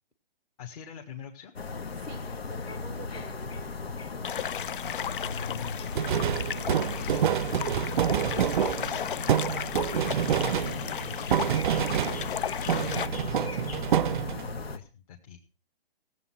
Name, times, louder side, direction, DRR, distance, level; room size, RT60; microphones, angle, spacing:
voice 1, 0.6-1.5 5.2-7.3 8.4-9.3 9.7-11.8 12.3-15.4, left 8 dB, 35° left, 1.7 m, -44 dB
sound 1, 1.6-14.8, left 4 dB, 85° left, 1.6 m, -37 dB
voice 2, 2.0-4.6, right 1 dB, 5° left, 0.7 m, -48 dB
sound 2, 4.2-13.1, left 9 dB, 60° left, 0.6 m, -35 dB
sound 3, 5.9-12.4 12.7-14.6, right 9 dB, 55° right, 0.6 m, -27 dB
17.0 x 7.7 x 5.9 m
hypercardioid pair, 155°, 30 cm